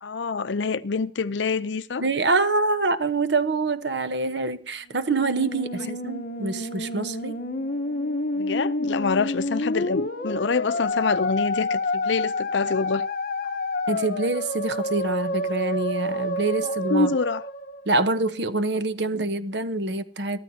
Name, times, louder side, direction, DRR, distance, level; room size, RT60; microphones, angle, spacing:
voice 1, 0.0-2.0 5.8-5.9 8.3-13.1 16.6-17.4, left 4 dB, 75° left, 0.6 m, -26 dB
voice 2, 2.0-7.4 13.9-17.1 17.9-20.4, right 3 dB, 65° right, 1.0 m, -25 dB
Musical instrument, 4.9-18.3, left 2 dB, 50° left, 1.0 m, -29 dB
23.0 x 13.5 x 2.8 m
head